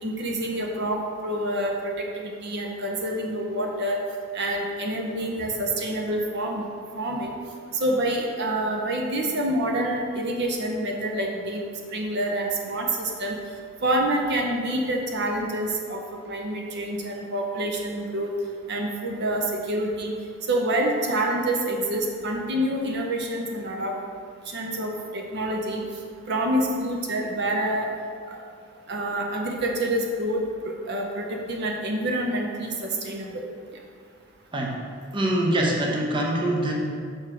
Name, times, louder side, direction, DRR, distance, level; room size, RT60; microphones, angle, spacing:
voice 1, 0.0-4.0 4.3-6.7 7.0-7.3 7.7-11.6 11.9-13.4 13.8-16.0 16.3-18.3 18.7-20.1 20.5-23.9 24.5-25.8 26.3-27.9 28.3-28.4 28.9-33.4, right 1 dB, 55° right, 1 dB, 0.7 m, -27 dB
voice 2, 34.5-34.8 35.1-36.7, right 1 dB, 25° right, -1 dB, 0.7 m, -24 dB
6.1 x 4.8 x 4.9 m, 2.2 s
head